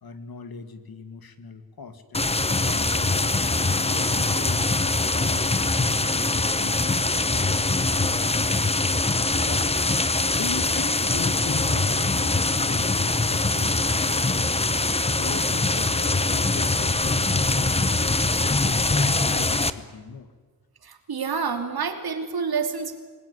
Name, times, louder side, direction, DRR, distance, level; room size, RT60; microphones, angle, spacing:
voice 1, 0.0-3.5 3.9-4.7 5.0-9.9 10.3-18.1 18.4-20.3, left 5 dB, 75° left, 9 dB, 2.3 m, -40 dB
sound 1, 2.1-19.7, left 3 dB, 15° left, 0.9 m, -23 dB
voice 2, 20.8-23.0, right 5 dB, 85° right, 6 dB, 3.1 m, -28 dB
27.5 x 20.5 x 9.9 m, 1.5 s
wide cardioid pair, 150°, 36 cm